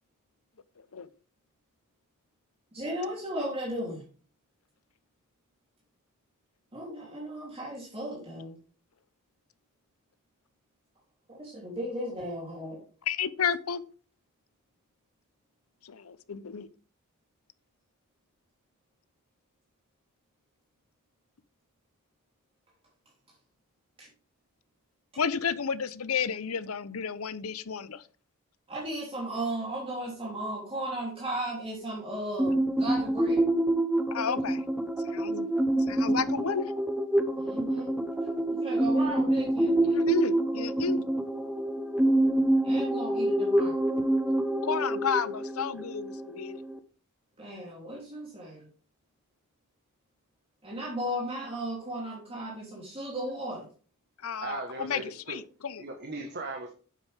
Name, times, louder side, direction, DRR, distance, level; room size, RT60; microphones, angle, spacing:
voice 1, 2.7-4.0 6.7-8.5 11.3-12.8 24.0-24.1 28.7-33.4 37.4-38.0 38.5-40.0 42.6-43.7 47.4-48.7 50.6-53.7, right 1 dB, 25° right, 3.1 m, -35 dB
voice 2, 13.1-13.8 15.8-16.7 25.2-28.1 34.1-34.6 35.0-36.7 39.9-41.0 44.6-46.6 54.2-55.8, left 6 dB, 85° left, 0.7 m, -32 dB
sound 1, 32.4-46.8, right 1 dB, 5° right, 0.8 m, -27 dB
voice 3, 54.4-55.4 55.8-56.7, right 3 dB, 50° right, 1.4 m, -38 dB
9.5 x 8.3 x 3.5 m
head